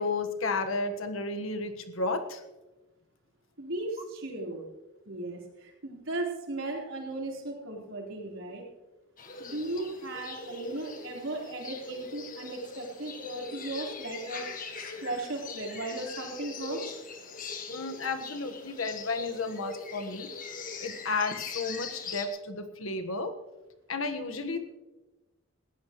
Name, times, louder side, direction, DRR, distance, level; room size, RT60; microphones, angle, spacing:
voice 1, 0.0-2.4 17.7-20.3 20.8-23.3 23.9-24.7, left 3 dB, 80° left, 7 dB, 1.4 m, -32 dB
voice 2, 3.6-4.6 5.1-8.6 9.4-14.4 14.8-17.0, right 2 dB, 75° right, -1 dB, 4.2 m, -36 dB
sound 1, 9.2-22.3, left 4 dB, 40° left, 1.6 m, -41 dB
20.0 x 15.0 x 3.1 m, 1.1 s
head